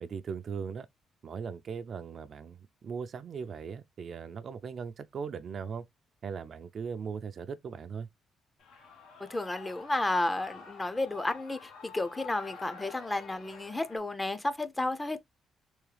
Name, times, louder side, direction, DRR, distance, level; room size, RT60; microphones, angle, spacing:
voice 1, 0.0-0.9 1.2-5.8 6.2-8.1, right 6 dB, 55° right, 0.4 m, -39 dB
Shout / Cheering, 8.6-14.0, left 5 dB, 85° left, 1.1 m, -48 dB
voice 2, 9.3-15.2, left 2 dB, 15° left, 0.5 m, -32 dB
3.5 x 3.1 x 3.3 m
cardioid pair, 90°, 0 cm